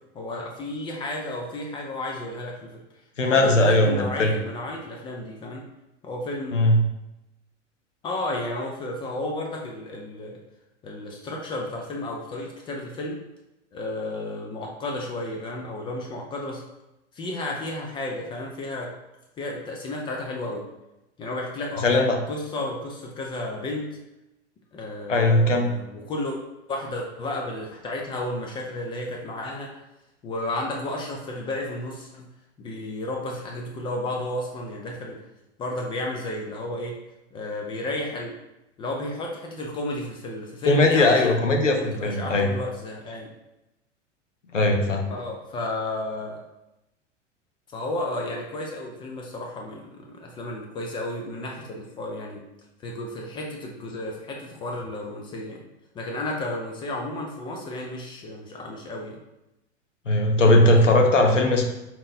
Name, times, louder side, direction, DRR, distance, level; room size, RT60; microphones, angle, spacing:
voice 1, 0.1-2.8 3.2-5.6 6.0-6.7 8.0-10.4 10.8-13.2 13.7-16.6 17.1-18.9 19.4-20.7 21.2-23.9 24.7-26.4 26.7-29.8 30.2-32.3 32.6-35.2 35.6-37.0 37.3-38.3 38.8-41.3 41.7-43.3 45.1-46.4 47.7-52.4 52.8-55.6 55.9-59.2, left 1 dB, 15° left, 0 dB, 0.3 m, -32 dB
voice 2, 3.2-4.4 6.5-6.8 21.8-22.2 25.1-25.7 40.7-42.5 44.5-45.0 60.1-61.7, left 2 dB, 85° left, 3 dB, 0.7 m, -19 dB
4.2 x 3.7 x 2.6 m, 0.93 s
figure-of-eight pair, 90°, 36 cm